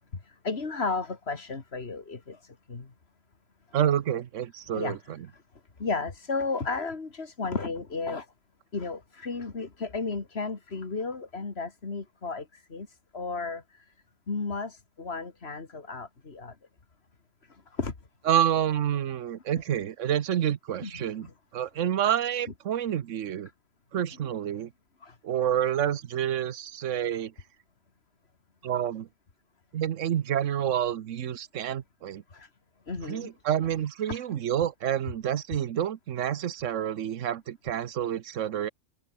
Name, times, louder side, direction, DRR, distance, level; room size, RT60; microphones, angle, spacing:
voice 1, 0.4-2.9 4.7-5.0 5.8-8.3 8.7-12.9 13.1-13.6 14.3-16.5 17.8-17.9 20.8-21.3 25.0-25.2 32.3-32.5 32.9-33.3 34.1-34.2, left 4 dB, 55° left, 2.5 m, -33 dB
voice 2, 3.7-5.2 18.3-21.3 21.5-23.5 23.9-24.7 25.2-27.3 28.6-29.1 29.7-32.2 33.1-38.7, right 10 dB, 80° right, 1.2 m, -28 dB
omnidirectional pair, 1.3 m